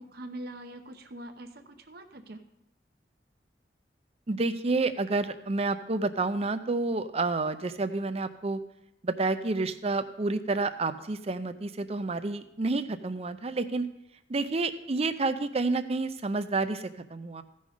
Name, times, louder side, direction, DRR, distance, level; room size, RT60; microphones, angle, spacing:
voice 1, 0.0-2.4, right 1 dB, 55° right, 6 dB, 0.8 m, -43 dB
voice 2, 4.3-8.6 9.0-13.9 14.3-17.4, right 3 dB, 35° right, 11 dB, 0.5 m, -29 dB
15.0 x 5.5 x 4.9 m, 0.85 s
head